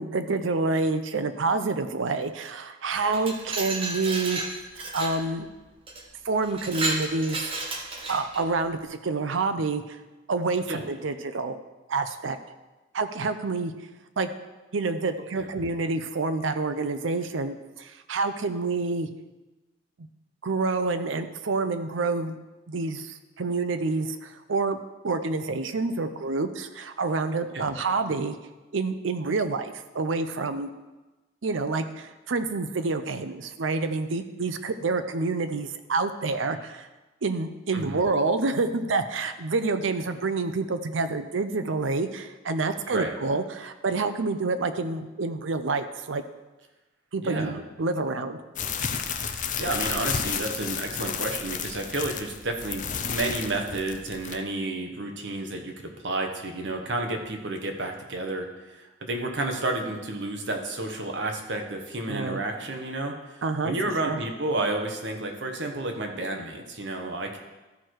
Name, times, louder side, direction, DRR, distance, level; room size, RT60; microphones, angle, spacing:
voice 1, 0.0-4.4 4.9-5.5 6.2-7.5 8.1-10.0 10.3-11.5 11.9-12.4 12.9-13.7 14.2-14.3 14.7-19.1 20.0-20.1 20.4-22.4 22.7-24.8 25.0-28.3 28.7-30.7 31.4-36.9 37.2-46.2 47.1-48.4 62.1-62.4 63.4-63.7 64.1-64.2, right 3 dB, 90° right, 9 dB, 0.6 m, -28 dB
Glass, 2.9-5.2 5.9-6.0 6.4-8.5, right 2 dB, 30° right, 1.0 m, -32 dB
voice 2, 47.2-47.5 49.6-67.4, right 2 dB, 65° right, 3 dB, 1.2 m, -31 dB
sound 1, 48.6-54.4, left 7 dB, 40° left, 0.6 m, -32 dB
13.5 x 4.7 x 4.6 m, 1.1 s
head